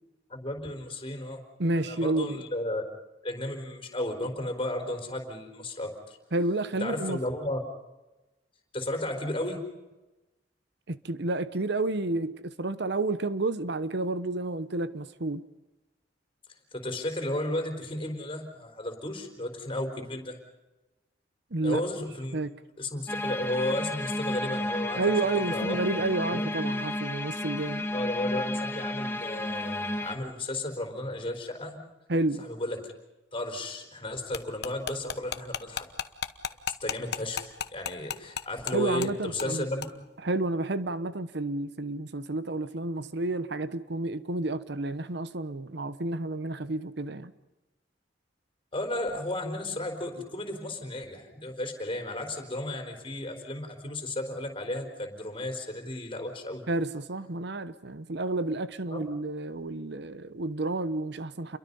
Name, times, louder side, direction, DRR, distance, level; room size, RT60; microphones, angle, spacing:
voice 1, 0.3-1.4 1.7-2.8 3.2-6.2 6.8-7.6 8.7-9.7 16.7-20.4 21.6-22.4 22.8-25.0 25.5-25.8 26.2-26.5 27.9-31.8 32.4-32.9 33.3-35.9 36.8-39.8 48.7-56.7 58.9-59.1, left 1 dB, 30° left, 4.4 m, -34 dB
voice 2, 1.6-2.4 6.3-7.2 10.9-15.4 21.5-21.8 22.3-22.5 25.0-27.9 32.1-32.5 38.7-39.7 40.2-47.3 56.7-61.6, right 2 dB, 65° right, 1.0 m, -30 dB
sound 1, 23.1-30.2, left 1 dB, 10° left, 1.5 m, -32 dB
sound 2, 34.3-38.7 39.0-39.1 39.4-39.5 39.8-39.9, left 7 dB, 65° left, 1.1 m, -33 dB
29.0 x 23.0 x 5.6 m
head